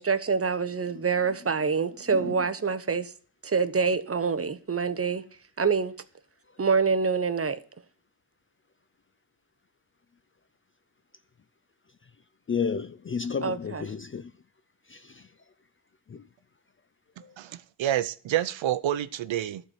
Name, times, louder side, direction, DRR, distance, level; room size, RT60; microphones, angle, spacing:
voice 1, 0.0-3.1 3.4-5.2 5.6-5.9 6.6-7.6 13.4-13.8, right 5 dB, 30° right, 1.0 m, -26 dB
voice 2, 2.1-2.5 12.5-14.3 14.9-15.3 16.1-16.2 17.2-17.4, left 6 dB, 30° left, 0.4 m, -32 dB
voice 3, 17.4-19.6, right 12 dB, 70° right, 0.7 m, -28 dB
11.5 x 4.5 x 7.9 m
cardioid pair, 70°, 48 cm